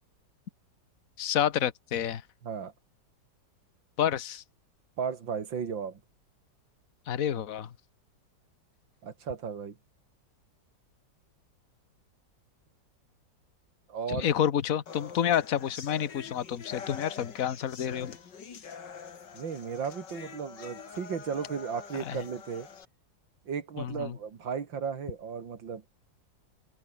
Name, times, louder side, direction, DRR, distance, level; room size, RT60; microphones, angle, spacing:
voice 1, 1.2-2.2 4.0-4.4 7.1-7.7 14.1-18.2 22.0-22.2 23.8-24.2, left 9 dB, 50° left, 1.5 m, -29 dB
voice 2, 5.0-6.0 9.0-9.8 13.9-14.3 19.3-22.7 23.5-25.9, right 6 dB, 85° right, 2.8 m, -35 dB
sound 1, 14.9-22.8, left 6 dB, 70° left, 2.7 m, -45 dB
omnidirectional pair, 2.0 m